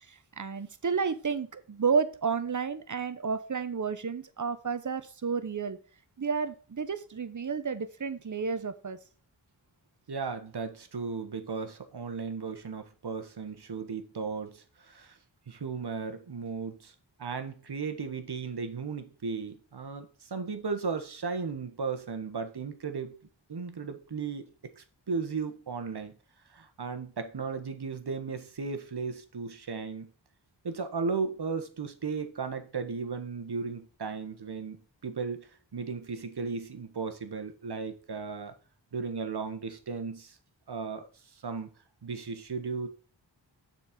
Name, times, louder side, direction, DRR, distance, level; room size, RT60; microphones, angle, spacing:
voice 1, 0.1-5.8 6.2-9.0, right 5 dB, 40° right, 0.9 m, -31 dB
voice 2, 10.1-15.2 15.5-23.1 23.5-24.5 24.8-26.1 26.5-30.1 30.6-34.8 35.0-38.5 38.9-40.4 40.7-41.7 42.0-42.9, right 5 dB, 60° right, 1.3 m, -35 dB
7.1 x 4.4 x 5.1 m
cardioid pair, 40°, 45 cm